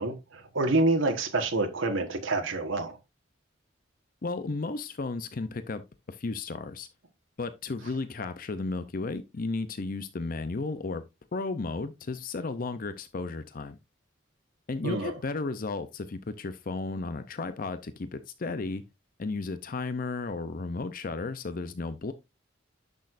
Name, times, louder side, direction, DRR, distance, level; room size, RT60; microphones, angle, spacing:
voice 1, 0.0-3.0 14.8-15.1, right 2 dB, 85° right, 1.4 m, -27 dB
voice 2, 4.2-6.9 7.4-11.0 11.3-13.8 14.7-18.8 19.2-22.1, left 3 dB, 45° left, 0.6 m, -34 dB
10.5 x 6.3 x 2.5 m
head